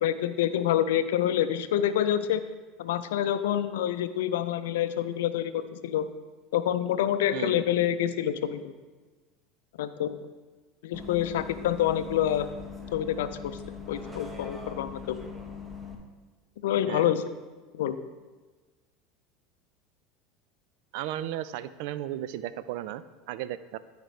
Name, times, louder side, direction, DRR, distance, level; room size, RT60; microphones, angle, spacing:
voice 1, 0.0-2.4 2.8-6.1 6.5-8.7 9.8-10.3 10.8-12.5 12.9-13.6 13.9-15.2 16.6-17.2 17.7-18.0, left 11 dB, 80° left, 12 dB, 0.5 m, -27 dB
voice 2, 7.3-7.6 16.9-17.1 20.9-23.8, right 12 dB, 70° right, 14 dB, 0.4 m, -35 dB
Bus, 10.9-16.0, left 5 dB, 5° right, 1.2 m, -41 dB
13.5 x 5.1 x 3.2 m, 1.3 s
hypercardioid pair, 90°, 0 cm